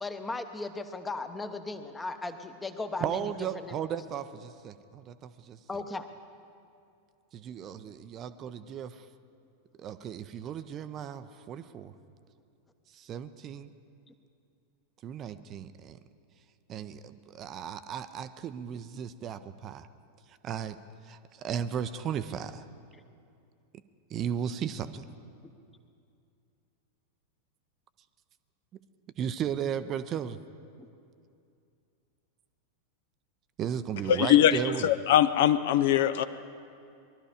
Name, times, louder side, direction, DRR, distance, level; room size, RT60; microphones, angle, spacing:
voice 1, 0.0-3.8 5.7-6.1 22.9-23.0 30.8-30.9, left 3 dB, 10° left, 9 dB, 0.9 m, -37 dB
voice 2, 3.0-5.6 7.3-9.1 9.8-11.9 12.9-13.7 15.0-16.0 16.7-19.9 20.4-20.8 21.0-22.6 24.1-25.1 29.2-30.4 33.6-34.9, right 8 dB, 30° right, 12 dB, 0.5 m, -35 dB
voice 3, 34.1-36.2, left 11 dB, 55° left, 12 dB, 0.4 m, -22 dB
20.0 x 12.5 x 5.0 m, 2.5 s
figure-of-eight pair, 90°, 0 cm